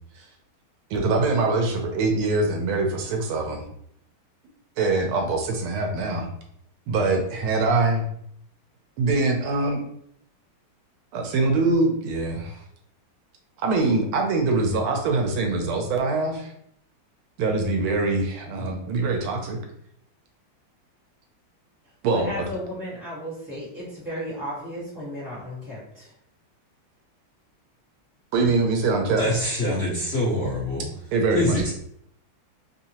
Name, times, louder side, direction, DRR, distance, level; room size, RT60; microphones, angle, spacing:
voice 1, 0.9-3.6 4.8-6.3 6.9-8.0 9.0-9.8 11.1-12.6 13.6-16.5 17.4-19.6 22.0-22.4 28.3-29.2 31.1-31.7, right 3 dB, 85° right, 3 dB, 1.5 m, -23 dB
voice 2, 22.1-26.1, equal, 10° right, -8 dB, 1.2 m, -34 dB
voice 3, 29.2-30.9 31.3-31.7, left 1 dB, 50° left, -9 dB, 0.8 m, -24 dB
3.6 x 2.7 x 2.8 m, 0.70 s
omnidirectional pair, 2.3 m